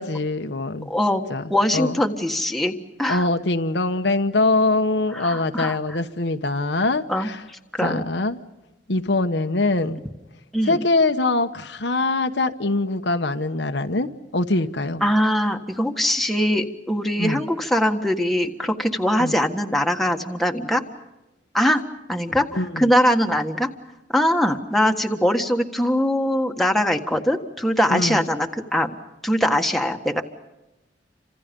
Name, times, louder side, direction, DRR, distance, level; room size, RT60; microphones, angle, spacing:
voice 1, 0.0-0.9 1.3-1.4 1.7-2.0 3.1-7.4 7.8-8.4 8.9-10.0 10.6-15.0 17.2-17.4 19.2-19.4 22.5-22.9 27.9-28.2, left 2 dB, 70° left, 7 dB, 1.2 m, -23 dB
voice 2, 0.8-3.3 5.1-6.0 7.1-8.0 10.5-10.8 15.0-20.8 21.5-21.8 22.1-23.7 24.1-28.9 29.2-30.2, equal, ahead, 3 dB, 1.6 m, -22 dB
29.5 x 26.5 x 5.3 m, 0.99 s
head